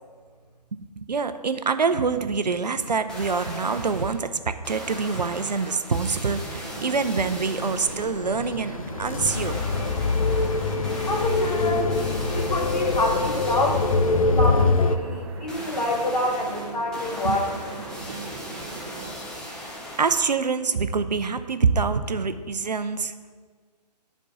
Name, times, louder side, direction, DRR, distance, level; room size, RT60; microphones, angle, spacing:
voice 1, 0.7-9.7 17.2-17.4 20.0-23.1, right 5 dB, 75° right, 11 dB, 0.6 m, -25 dB
sound 1, 2.9-4.2 4.6-8.2 9.2-14.2 15.5-20.4 20.9-21.0, equal, 5° left, 0.6 m, -38 dB
sound 2, 6.5-19.1, right 5 dB, 35° right, 0.7 m, -40 dB
sound 3, 7.7-15.0, left 3 dB, 55° left, 0.6 m, -24 dB
voice 2, 11.1-11.9 12.3-17.5 18.4-18.6, left 1 dB, 70° left, -1 dB, 2.0 m, -27 dB
8.2 x 4.5 x 6.1 m, 1.5 s
figure-of-eight pair, 140°, 21 cm